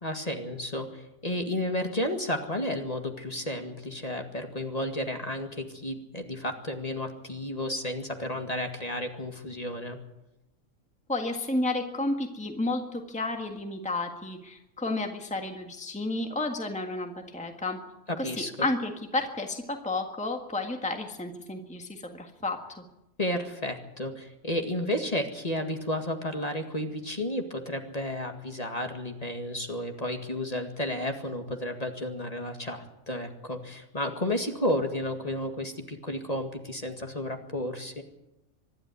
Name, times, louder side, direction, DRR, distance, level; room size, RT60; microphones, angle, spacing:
voice 1, 0.0-10.0 18.1-18.7 23.2-38.0, left 1 dB, 30° left, 5 dB, 2.0 m, -32 dB
voice 2, 11.1-17.8 18.2-22.8, left 2 dB, 5° left, 4 dB, 1.6 m, -32 dB
24.5 x 11.5 x 9.6 m, 0.93 s
omnidirectional pair, 1.4 m